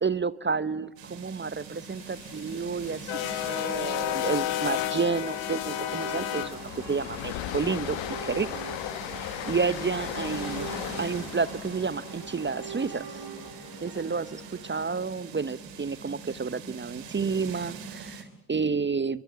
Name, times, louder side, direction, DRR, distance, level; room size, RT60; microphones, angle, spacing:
voice 1, 0.0-3.1 3.5-8.5 9.1-10.7 11.0-13.2 13.8-19.2, right 5 dB, 25° right, 18 dB, 0.9 m, -30 dB
sound 1, 1.0-18.2, right 5 dB, 65° right, 3.4 m, -44 dB
sound 2, 1.8-14.0, left 15 dB, 75° left, 1.6 m, -34 dB
sound 3, 5.2-15.4, right 7 dB, 50° right, 4.1 m, -44 dB
24.5 x 23.5 x 7.7 m, 0.96 s
hypercardioid pair, 45°, 46 cm